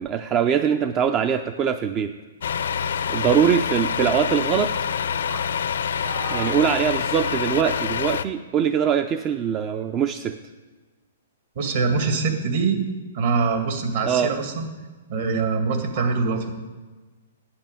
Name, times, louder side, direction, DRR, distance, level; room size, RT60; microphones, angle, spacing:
voice 1, 0.0-2.1 3.1-4.7 6.3-10.3 14.0-14.3, right 8 dB, 25° right, 9 dB, 0.5 m, -22 dB
Truck, 2.4-8.2, left 7 dB, 75° left, 0.6 m, -26 dB
voice 2, 6.0-6.6 7.3-7.4 11.6-12.8 13.1-14.7 15.1-16.5, right 4 dB, 55° right, 4 dB, 2.2 m, -24 dB
8.6 x 8.2 x 9.0 m, 1.3 s
hypercardioid pair, 140°, 0 cm